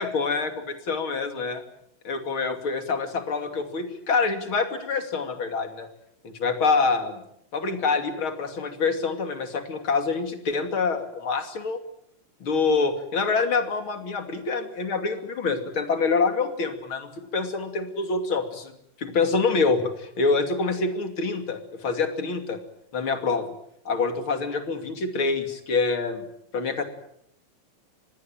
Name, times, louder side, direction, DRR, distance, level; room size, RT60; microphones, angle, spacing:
voice 1, 0.0-1.6 2.0-5.9 6.2-7.2 7.5-11.8 12.4-18.7 19.0-22.6 22.9-23.5 23.8-26.2 26.5-26.8, left 4 dB, 45° left, 7 dB, 3.3 m, -26 dB
25.5 x 20.0 x 9.0 m, 0.72 s
omnidirectional pair, 3.3 m